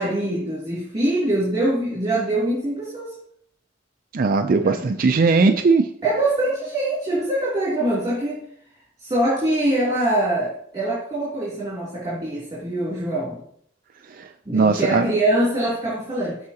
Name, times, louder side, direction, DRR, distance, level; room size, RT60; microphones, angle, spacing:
voice 1, 0.0-3.1 4.6-5.0 5.4-5.5 6.0-8.4 9.0-13.4 14.4-16.4, right 1 dB, 20° right, -7 dB, 2.9 m, -23 dB
voice 2, 4.1-5.8 14.1-15.1, right 4 dB, 50° right, 7 dB, 0.4 m, -19 dB
14.0 x 4.8 x 2.8 m, 0.66 s
head